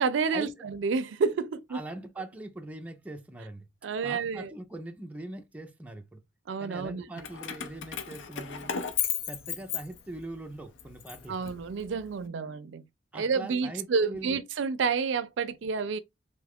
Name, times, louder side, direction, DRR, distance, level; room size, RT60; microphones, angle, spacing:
voice 1, 0.0-1.8 3.8-4.5 6.5-7.1 11.3-12.8 13.1-16.0, right 5 dB, 80° right, 0.4 m, -29 dB
voice 2, 1.7-3.7 4.0-6.2 6.6-8.7 9.3-11.4 13.1-14.3, right 1 dB, 10° right, 0.4 m, -41 dB
Keys jangling, 7.2-10.3 10.8-12.1, left 8 dB, 80° left, 0.5 m, -35 dB
3.1 x 2.3 x 3.4 m
head